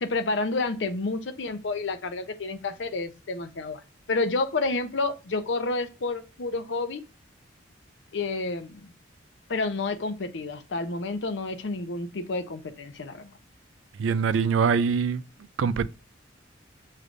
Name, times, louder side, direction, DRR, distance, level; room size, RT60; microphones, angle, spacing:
voice 1, 0.0-3.8 4.1-7.0 8.1-8.9 9.5-13.3, left 3 dB, 65° left, 0.6 m, -29 dB
voice 2, 14.0-15.2 15.6-15.9, right 6 dB, 80° right, 0.3 m, -23 dB
6.4 x 3.2 x 2.5 m
head